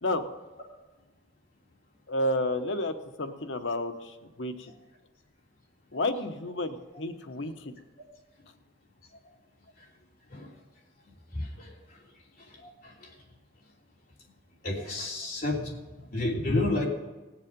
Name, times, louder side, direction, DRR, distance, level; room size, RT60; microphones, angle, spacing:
voice 1, 2.1-4.7 5.9-7.7, left 1 dB, 85° left, 7 dB, 1.1 m, -31 dB
voice 2, 14.6-15.7 16.1-16.9, left 2 dB, 50° left, -3 dB, 3.1 m, -29 dB
18.5 x 7.4 x 5.3 m, 1.2 s
head